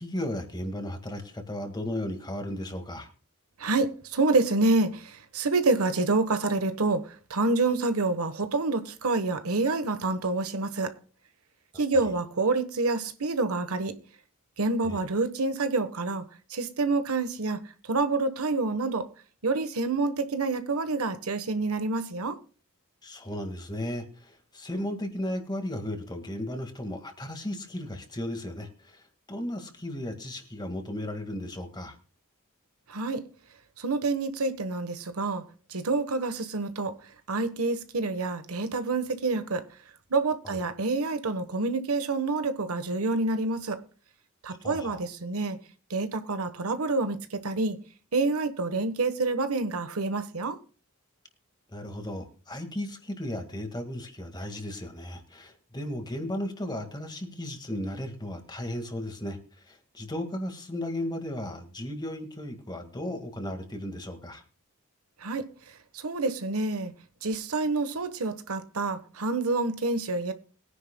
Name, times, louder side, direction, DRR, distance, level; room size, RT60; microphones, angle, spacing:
voice 1, 0.0-3.1 14.8-15.0 23.0-29.0 29.3-31.9 40.4-40.6 44.6-45.0 51.7-59.4 59.7-64.4, left 1 dB, 20° left, 1.8 m, -35 dB
voice 2, 3.6-10.9 11.7-13.9 14.6-16.2 16.5-17.6 17.9-19.1 19.4-22.4 32.9-33.2 33.8-35.4 35.7-36.9 37.3-39.6 40.1-43.8 44.4-45.6 45.9-47.8 48.1-50.6 65.2-65.5 65.9-66.9 67.2-70.3, right 3 dB, 85° right, 1.1 m, -27 dB
21.5 x 10.0 x 2.2 m
head